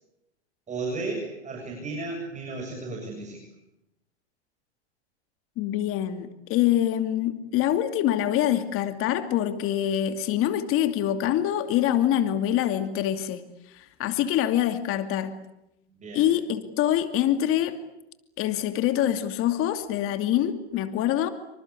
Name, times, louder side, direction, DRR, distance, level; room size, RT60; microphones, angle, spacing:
voice 1, 0.7-3.4 15.9-16.2, right 3 dB, 20° right, 0 dB, 7.5 m, -34 dB
voice 2, 5.6-13.4 13.7-15.3 16.1-17.8 18.4-21.3, left 11 dB, 40° left, 8 dB, 2.6 m, -25 dB
26.5 x 25.5 x 8.5 m, 0.87 s
hypercardioid pair, 120°, 34 cm